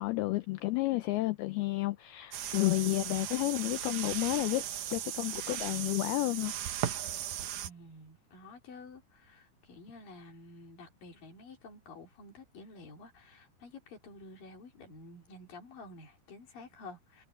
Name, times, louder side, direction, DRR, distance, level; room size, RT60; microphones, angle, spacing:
voice 1, 0.0-6.5, left 19 dB, 85° left, 2.2 m, -31 dB
sound 1, 2.3-7.7, right 11 dB, 75° right, 1.8 m, -37 dB
voice 2, 7.6-17.3, left 2 dB, 50° left, 4.8 m, -51 dB
omnidirectional pair, 5.2 m